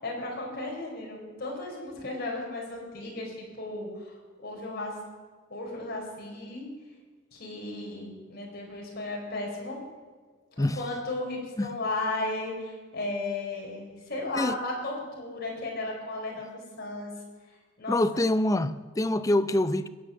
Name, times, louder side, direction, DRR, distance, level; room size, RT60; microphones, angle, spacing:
voice 1, 0.0-5.0 5.5-6.7 7.3-9.8 10.5-17.1 17.8-18.3, left 2 dB, 50° left, 4.4 m, -35 dB
voice 2, 17.9-19.9, left 1 dB, 15° left, 0.5 m, -25 dB
21.5 x 8.1 x 7.0 m
head